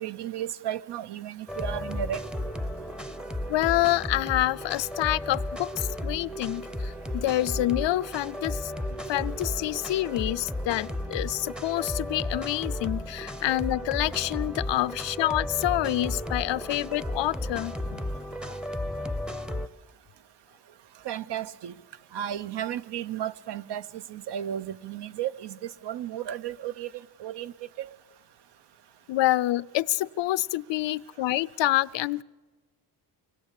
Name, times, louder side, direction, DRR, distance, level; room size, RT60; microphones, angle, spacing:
voice 1, 0.0-2.2 21.0-21.7 22.1-25.6 25.8-26.9 27.2-27.5 27.8-27.9, right 10 dB, 70° right, 0.9 m, -34 dB
sound 1, 1.5-19.7, left 1 dB, ahead, 0.7 m, -34 dB
voice 2, 3.5-18.0 18.4-18.6 29.1-32.2, left 15 dB, 80° left, 0.7 m, -27 dB
25.0 x 20.0 x 8.4 m
cardioid pair, 155°, 43 cm